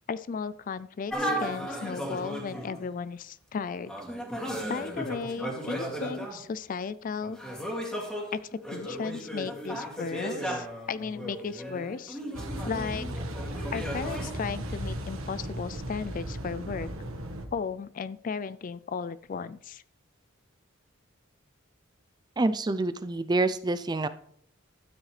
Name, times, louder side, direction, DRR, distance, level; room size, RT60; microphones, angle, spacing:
voice 1, 0.1-3.9 4.7-7.4 8.3-12.2 12.6-13.1 13.7-16.9 17.5-19.8, left 5 dB, 40° left, 16 dB, 0.3 m, -35 dB
sound 1, 1.1-2.9 3.9-6.4 7.2-14.3, equal, 5° left, 2.4 m, -35 dB
Car passing by / Idling / Accelerating revving vroom, 12.3-17.5, right 1 dB, 85° right, 1.4 m, -36 dB
voice 2, 22.4-24.1, right 2 dB, 20° right, 12 dB, 0.4 m, -27 dB
13.0 x 9.2 x 3.3 m, 0.64 s
head